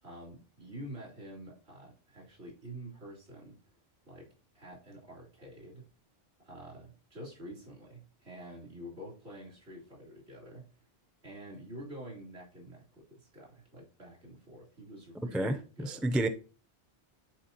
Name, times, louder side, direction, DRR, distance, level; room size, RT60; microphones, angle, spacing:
voice 1, 0.0-3.6 4.1-4.3 4.5-5.9 6.4-10.9 11.2-16.1, right 1 dB, 80° right, 4.1 m, -48 dB
voice 2, 15.3-16.3, right 1 dB, ahead, 0.3 m, -30 dB
10.5 x 4.6 x 2.9 m
omnidirectional pair, 1.2 m